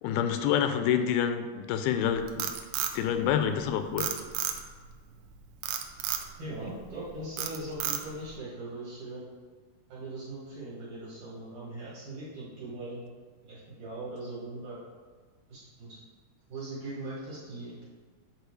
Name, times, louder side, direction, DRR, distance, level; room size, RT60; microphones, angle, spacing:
voice 1, 0.0-2.5 2.9-4.1, left 8 dB, 85° left, 8 dB, 2.3 m, -27 dB
Frog, 2.1-3.6 4.0-4.9 5.6-6.3 6.8-7.0 7.4-8.3, right 10 dB, 90° right, 2.5 m, -32 dB
voice 2, 6.4-9.2 9.9-13.0 13.4-14.8 15.5-16.0 16.5-17.7, right 2 dB, 60° right, -9 dB, 3.2 m, -40 dB
8.3 x 4.0 x 4.7 m, 1.5 s
omnidirectional pair, 4.3 m